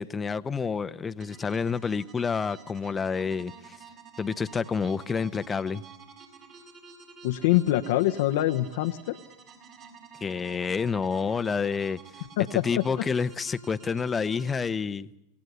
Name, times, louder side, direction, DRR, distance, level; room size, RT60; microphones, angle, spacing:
voice 1, 0.0-3.8 4.2-5.8 10.2-12.0 12.6-15.1, left 5 dB, 20° left, 13 dB, 0.9 m, -29 dB
sound 1, 1.2-14.5, right 5 dB, 40° right, 6.4 m, -50 dB
voice 2, 7.2-9.2 12.4-12.8, left 15 dB, 65° left, 7 dB, 1.0 m, -24 dB
27.5 x 17.5 x 8.2 m, 0.86 s
hypercardioid pair, 100°, 0 cm